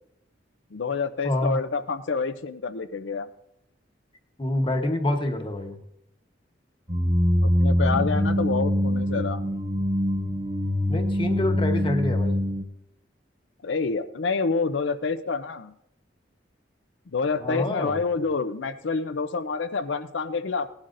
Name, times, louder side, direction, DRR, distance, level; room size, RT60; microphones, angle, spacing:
voice 1, 0.7-3.3 7.6-9.4 13.6-15.7 17.1-20.7, left 4 dB, 90° left, 10 dB, 0.6 m, -27 dB
voice 2, 1.2-1.6 4.4-5.8 10.9-12.4 17.4-18.0, left 1 dB, 30° left, 5 dB, 1.1 m, -26 dB
sound 1, 6.9-12.6, equal, 40° right, 2.5 m, -24 dB
18.0 x 11.5 x 2.6 m, 0.77 s
head